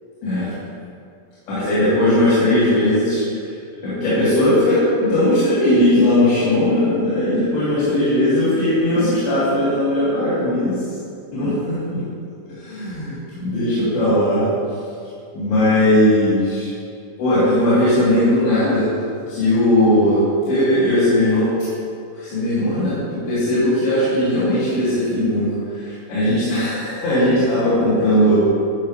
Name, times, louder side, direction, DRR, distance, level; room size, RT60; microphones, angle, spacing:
voice 1, 1.5-3.2 3.8-10.8 11.3-12.0 12.5-14.4 15.3-16.7 17.2-18.9 19.3-21.5 22.2-28.4, left 1 dB, 75° left, -14 dB, 4.2 m, -18 dB
12.0 x 6.6 x 3.3 m, 2.4 s
omnidirectional pair, 4.6 m